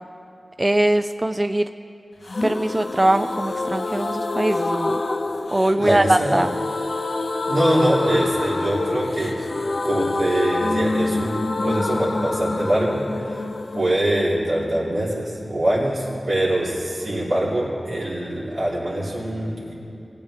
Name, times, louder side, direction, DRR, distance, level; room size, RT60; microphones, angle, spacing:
voice 1, 0.6-1.7 2.4-5.0 5.5-6.6, right 1 dB, 25° right, 9 dB, 0.3 m, -21 dB
sound 1, 2.3-15.9 16.1-16.2 16.5-16.6, left 2 dB, 60° left, 0.5 m, -27 dB
voice 2, 5.7-6.4 7.5-9.3 9.8-13.4 13.7-19.7, right 1 dB, 85° right, -8 dB, 3.2 m, -23 dB
20.0 x 8.6 x 3.3 m, 2.9 s
wide cardioid pair, 50°, 0 cm